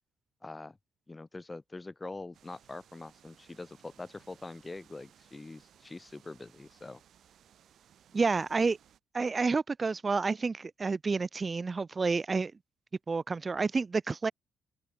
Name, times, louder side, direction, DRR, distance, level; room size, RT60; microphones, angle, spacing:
voice 1, 0.4-0.8 1.1-7.0, left 2 dB, 20° left, 0.6 m, -44 dB
sound 1, 2.3-9.0, right 10 dB, 65° right, 2.5 m, -62 dB
voice 2, 8.1-8.8 9.1-12.5 13.1-14.3, right 4 dB, 30° right, 0.3 m, -29 dB
supercardioid pair, 65°, 0 cm